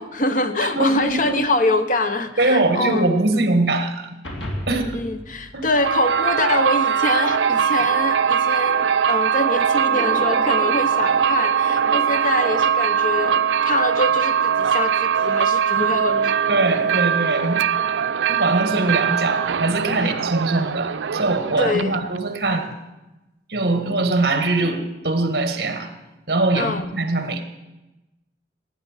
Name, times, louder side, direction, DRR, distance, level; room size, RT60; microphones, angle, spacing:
voice 1, 0.0-3.1 4.7-13.4 13.6-16.4 20.0-20.1 21.6-22.1 26.5-26.8, left 2 dB, 45° left, 9 dB, 0.9 m, -24 dB
voice 2, 0.6-1.4 2.4-4.1 4.7-5.0 5.5-5.7 7.7-7.8 15.8-15.9 16.5-17.6 18.3-22.7 23.5-25.9 26.3-27.4, right 2 dB, 60° right, 7 dB, 1.6 m, -22 dB
sound 1, 4.2-6.7, equal, 80° left, 2.9 m, -34 dB
sound 2, 5.7-22.2, right 7 dB, 90° right, 0.5 m, -21 dB
sound 3, 9.8-13.9, equal, 5° left, 2.5 m, -36 dB
17.0 x 9.4 x 7.4 m, 1.0 s
head